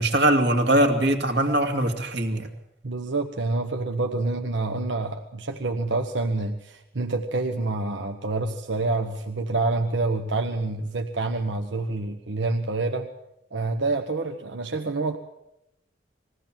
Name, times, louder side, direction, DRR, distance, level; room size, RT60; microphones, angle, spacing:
voice 1, 0.0-2.5, right 1 dB, 65° right, 4 dB, 2.3 m, -21 dB
voice 2, 2.8-13.1 13.5-15.2, right 3 dB, 80° right, 4 dB, 1.2 m, -27 dB
21.5 x 16.0 x 7.5 m, 0.86 s
head